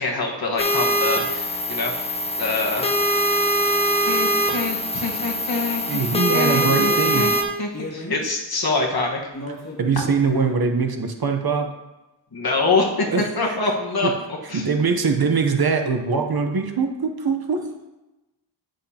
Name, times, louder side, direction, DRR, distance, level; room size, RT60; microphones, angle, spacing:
voice 1, 0.0-1.9 2.4-2.9 4.1-7.3 7.6-9.2 12.3-14.1 14.5-14.7, left 3 dB, 50° left, -1 dB, 1.4 m, -25 dB
sound 1, 0.6-7.4, equal, 15° left, 0.8 m, -22 dB
sound 2, 3.3-3.5 4.6-4.8 6.6-7.1 7.7-8.3 9.3-10.5, left 1 dB, 35° left, 2.0 m, -34 dB
voice 2, 5.9-7.3 9.8-11.7 13.1-13.3 14.5-17.6, right 5 dB, 50° right, 4 dB, 0.8 m, -22 dB
9.6 x 6.4 x 2.8 m, 1.0 s
wide cardioid pair, 105°, 46 cm